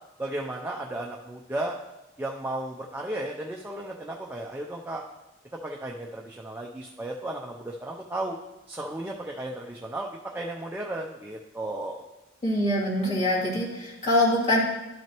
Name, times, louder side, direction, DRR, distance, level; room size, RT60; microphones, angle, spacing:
voice 1, 0.2-1.8 2.2-5.0 5.6-8.4 8.7-10.1 10.3-12.1, right 1 dB, 10° right, -1 dB, 0.5 m, -34 dB
voice 2, 12.4-14.6, left 1 dB, 35° left, -8 dB, 2.6 m, -24 dB
12.0 x 6.1 x 3.0 m, 1.0 s
head